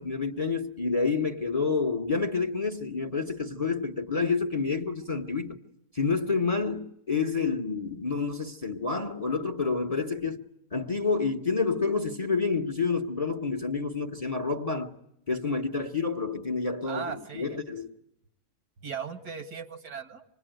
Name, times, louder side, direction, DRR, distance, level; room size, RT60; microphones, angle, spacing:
voice 1, 0.0-5.6 5.9-10.4 10.7-15.0 15.3-17.9, left 4 dB, 25° left, 1.0 m, -29 dB
voice 2, 16.9-17.6 18.8-20.2, right 6 dB, 85° right, 2.5 m, -38 dB
26.5 x 21.0 x 9.2 m
omnidirectional pair, 1.7 m